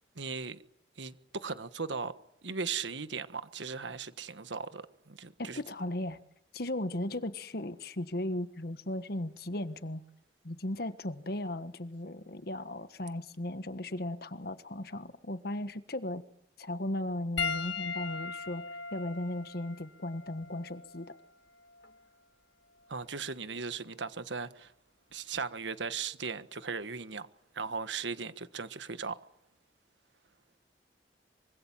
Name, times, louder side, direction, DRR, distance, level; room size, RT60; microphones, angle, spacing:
voice 1, 0.1-0.6 1.0-2.1 2.4-5.6 22.9-24.7 25.1-27.3 27.5-29.2, right 5 dB, 85° right, 1.4 m, -37 dB
voice 2, 5.4-6.2 6.5-10.0 10.4-16.2 16.6-18.6 18.9-21.1, left 1 dB, 55° left, 1.4 m, -36 dB
Piano, 17.4-22.0 23.0-23.2 25.1-25.2, left 5 dB, 75° left, 1.9 m, -39 dB
25.0 x 25.0 x 7.5 m
head